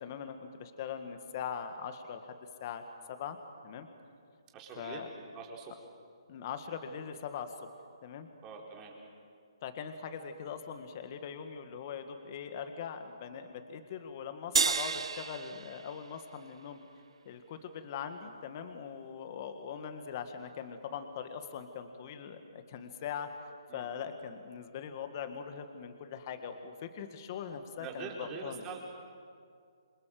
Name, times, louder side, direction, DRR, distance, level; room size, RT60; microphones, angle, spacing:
voice 1, 0.0-2.4 2.6-2.8 3.1-3.4 3.6-3.9 4.8-5.1 6.3-7.5 8.0-8.3 9.6-16.8 17.3-23.3 23.7-28.6, left 7 dB, 35° left, 7 dB, 1.8 m, -41 dB
voice 2, 4.5-5.1 5.3-5.7 8.4-8.9 23.7-23.9 27.8-28.8, right 5 dB, 20° right, 0 dB, 4.3 m, -44 dB
sound 1, 14.6-17.1, right 5 dB, 75° right, 1.0 m, -33 dB
28.0 x 24.0 x 7.8 m, 2.3 s
hypercardioid pair, 150°, 3 cm